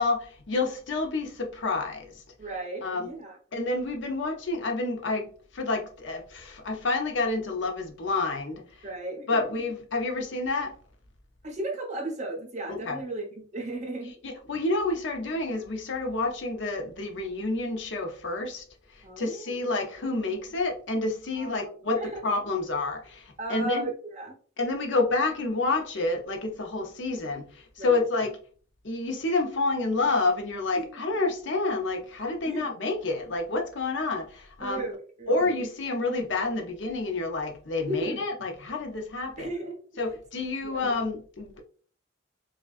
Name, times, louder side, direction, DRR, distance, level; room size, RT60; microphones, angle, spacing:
voice 1, 0.0-2.2 2.8-3.1 3.5-5.3 5.5-8.6 9.3-10.7 12.7-13.0 14.2-18.6 19.0-23.9 24.6-28.3 28.8-34.9 35.3-39.5 40.0-41.6, left 3 dB, 60° left, 0.7 m, -29 dB
voice 2, 2.4-3.4 8.8-9.5 11.4-14.1 19.0-19.5 21.4-22.2 23.4-24.3 27.8-28.0 30.7-31.0 32.4-32.6 34.6-35.5 37.8-38.2 39.4-39.8 40.6-40.8, right 1 dB, 35° right, 1.0 m, -35 dB
4.8 x 2.3 x 2.4 m
head